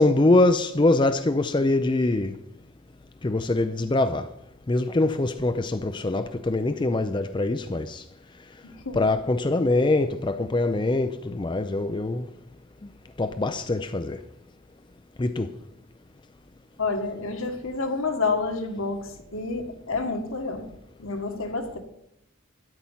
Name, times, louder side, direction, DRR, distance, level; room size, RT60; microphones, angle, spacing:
voice 1, 0.0-2.3 3.2-4.3 4.7-8.0 8.9-12.3 13.2-14.2 15.2-15.5, left 2 dB, 20° left, 0.4 m, -23 dB
voice 2, 8.6-9.0 16.8-20.7 21.0-21.8, left 3 dB, 70° left, 1.9 m, -29 dB
12.5 x 10.5 x 5.7 m
head